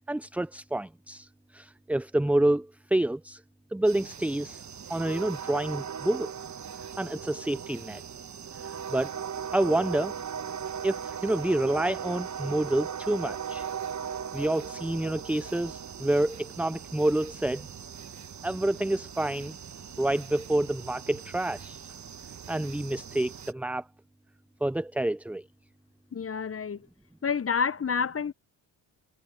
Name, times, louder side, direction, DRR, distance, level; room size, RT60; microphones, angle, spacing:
voice 1, 0.1-3.4 3.7-4.6 4.9-6.3 7.0-8.0 8.6-9.1 9.5-10.1 10.8-13.7 14.3-17.7 18.4-19.6 20.0-21.8 22.5-23.8 24.6-25.4, right 1 dB, 5° right, 0.4 m, -28 dB
sound 1, 3.9-23.5, right 7 dB, 35° right, 1.2 m, -39 dB
voice 2, 26.1-26.8 27.2-28.3, left 6 dB, 30° left, 1.0 m, -28 dB
hypercardioid pair, 50°, 49 cm